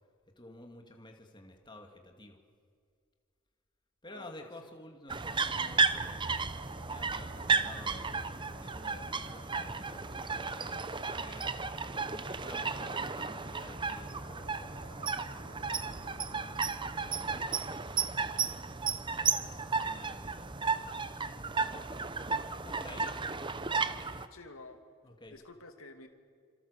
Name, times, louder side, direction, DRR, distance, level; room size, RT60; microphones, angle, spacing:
voice 1, 0.4-2.4 4.0-6.2 6.9-8.1 8.4-10.3 10.7-11.5 12.1-15.1 19.5-20.9 22.6-23.2 25.0-25.3, left 1 dB, 20° left, 3 dB, 2.4 m, -51 dB
voice 2, 4.1-4.7 24.3-24.8 25.3-26.1, left 2 dB, 70° left, 6 dB, 2.7 m, -51 dB
sound 1, 5.1-24.3, right 4 dB, 20° right, 0.8 m, -34 dB
sound 2, 6.4-16.6, left 1 dB, 45° left, 4.8 m, -56 dB
27.5 x 27.0 x 6.7 m, 2.1 s
head